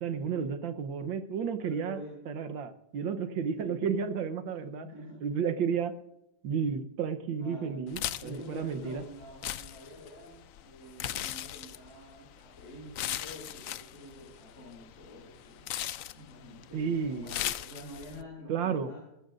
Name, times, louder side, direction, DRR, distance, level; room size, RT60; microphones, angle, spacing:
voice 1, 0.0-2.0 2.3-4.9 5.2-5.9 6.4-9.0 16.7-17.3 18.5-18.9, right 6 dB, 90° right, 9 dB, 1.7 m, -32 dB
voice 2, 1.6-2.2 3.6-3.8 4.8-5.3 7.4-7.8 8.2-15.7 16.1-19.1, equal, 40° left, -4 dB, 7.1 m, -48 dB
sound 1, 7.9-18.2, left 12 dB, 75° left, 0.7 m, -39 dB
20.5 x 15.0 x 2.6 m, 0.85 s
omnidirectional pair, 2.0 m